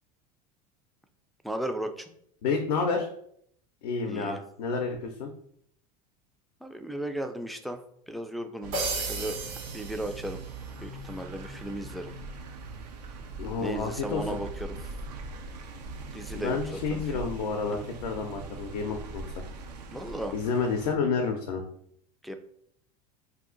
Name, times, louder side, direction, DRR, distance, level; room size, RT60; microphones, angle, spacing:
voice 1, 1.4-2.1 4.1-4.4 6.6-7.8 8.1-9.4 9.7-10.4 10.8-12.1 13.6-14.8 16.1-16.6 16.9-17.2 17.7-17.8 19.9-20.3 22.2-22.3, right 1 dB, ahead, 6 dB, 0.3 m, -35 dB
voice 2, 2.4-3.1 3.8-5.3 13.4-14.4 16.3-19.3 20.3-21.6, left 4 dB, 85° left, 3 dB, 0.5 m, -30 dB
sound 1, 8.6-20.9, right 3 dB, 90° right, 0.5 m, -41 dB
sound 2, 8.7-10.8, right 3 dB, 65° right, 1.4 m, -34 dB
2.7 x 2.4 x 3.7 m, 0.67 s
hypercardioid pair, 95°, 20 cm